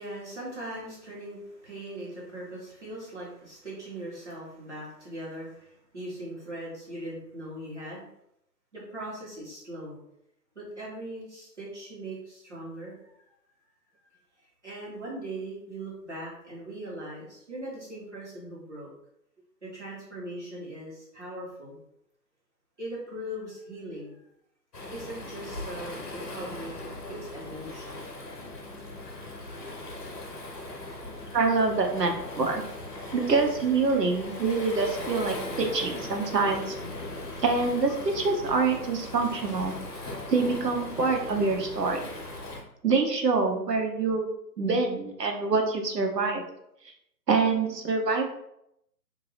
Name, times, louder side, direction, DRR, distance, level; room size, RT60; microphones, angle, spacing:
voice 1, 0.0-8.1 8.7-10.0 10.5-13.2 14.6-18.9 19.6-21.8 22.8-24.2 24.9-28.0, right 1 dB, 45° right, -6 dB, 1.4 m, -40 dB
Waves surf, 24.7-42.6, left 2 dB, 65° left, 1.1 m, -39 dB
voice 2, 31.3-32.6 33.1-36.7 37.4-39.8 40.3-42.1 42.8-44.3 44.6-46.4 47.3-48.2, right 4 dB, 75° right, 2 dB, 0.9 m, -25 dB
3.7 x 2.8 x 3.0 m, 0.78 s
figure-of-eight pair, 180°, 50 cm